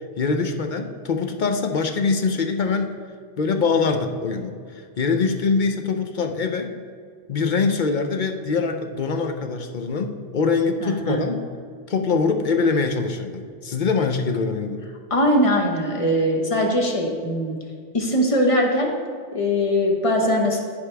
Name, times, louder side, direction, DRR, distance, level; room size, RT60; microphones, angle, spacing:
voice 1, 0.2-3.0 3.4-6.7 7.3-11.5 11.9-14.8, left 4 dB, 50° left, 6 dB, 0.7 m, -23 dB
voice 2, 10.8-11.2 15.1-17.6 17.9-18.9 19.3-20.6, equal, 30° left, 1 dB, 1.2 m, -21 dB
14.5 x 5.3 x 3.4 m, 2.1 s
omnidirectional pair, 1.2 m